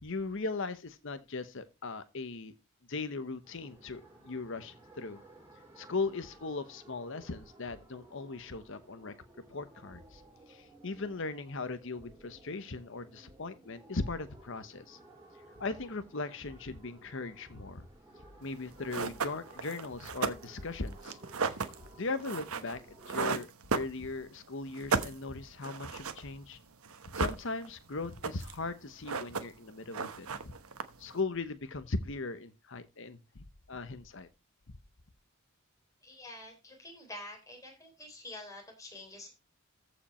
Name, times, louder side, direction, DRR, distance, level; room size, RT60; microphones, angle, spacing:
voice 1, 0.0-2.5 2.9-5.2 5.8-9.1 9.5-10.2 10.5-15.0 15.6-17.9 18.4-21.2 22.0-23.5 23.7-26.6 27.1-30.5 31.0-34.3, left 3 dB, 60° left, 1.0 m, -38 dB
sound 1, 3.4-23.3, right 1 dB, 10° right, 3.5 m, -57 dB
sound 2, 18.5-18.6 18.9-24.4 24.7-26.3 26.5-26.6 26.8-27.8 28.1-28.7 28.9-29.7 29.9-31.2, right 5 dB, 85° right, 1.1 m, -35 dB
voice 2, 36.0-39.3, left 2 dB, 15° left, 3.8 m, -47 dB
14.5 x 5.2 x 4.3 m
head